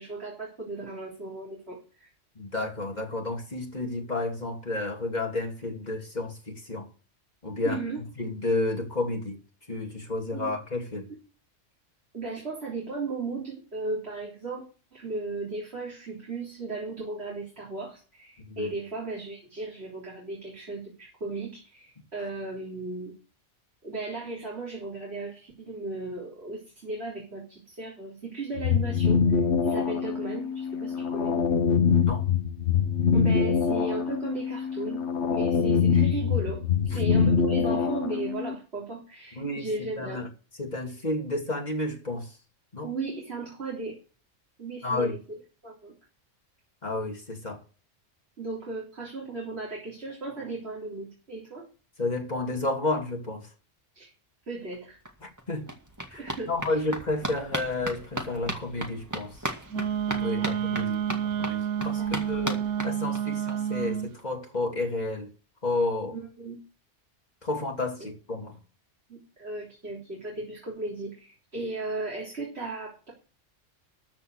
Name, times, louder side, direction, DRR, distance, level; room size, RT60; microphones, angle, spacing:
voice 1, 0.0-2.1 7.6-8.0 10.3-10.5 12.1-14.7 14.9-23.1 23.8-31.3 33.1-40.2 42.8-44.0 44.6-45.4 45.6-45.9 48.4-51.7 53.9-54.1 54.5-55.0 56.2-56.5 60.2-60.6 62.0-62.3 66.1-66.6 68.0-68.1 69.1-73.1, right 3 dB, 55° right, 3.9 m, -36 dB
voice 2, 2.4-6.9 7.4-7.8 8.2-9.4 9.7-11.1 18.4-18.7 31.7-32.2 39.3-39.7 40.0-40.3 40.6-42.3 42.7-42.9 44.8-45.2 46.8-47.6 52.0-53.5 55.2-55.6 56.1-59.4 60.2-65.3 65.6-66.1 67.4-68.6, left 2 dB, 35° left, 3.0 m, -31 dB
sound 1, 28.6-38.5, left 6 dB, 65° left, 1.3 m, -24 dB
sound 2, 54.7-54.8 55.0-63.5 63.8-63.9 64.2-64.3 64.5-64.6, right 1 dB, 15° right, 2.1 m, -37 dB
Wind instrument woodwind instrument, 59.7-64.1, right 9 dB, 75° right, 1.1 m, -29 dB
13.5 x 5.7 x 8.2 m
omnidirectional pair, 1.3 m